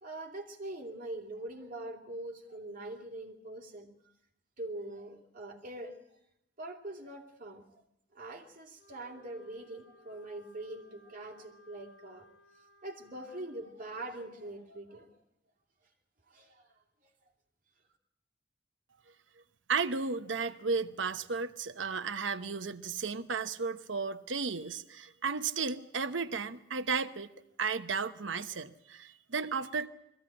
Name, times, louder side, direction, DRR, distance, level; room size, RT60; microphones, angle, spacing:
voice 1, 0.0-3.9 4.6-6.0 6.6-7.6 8.1-12.3 12.8-15.1 16.3-16.7 17.0-17.1, right 1 dB, 45° right, 1 dB, 2.8 m, -43 dB
Wind instrument woodwind instrument, 8.7-13.6, right 2 dB, 55° left, 6.9 m, -61 dB
voice 2, 19.7-27.3 27.6-29.9, right 5 dB, 90° right, 10 dB, 0.9 m, -34 dB
21.5 x 15.5 x 8.8 m, 0.82 s
head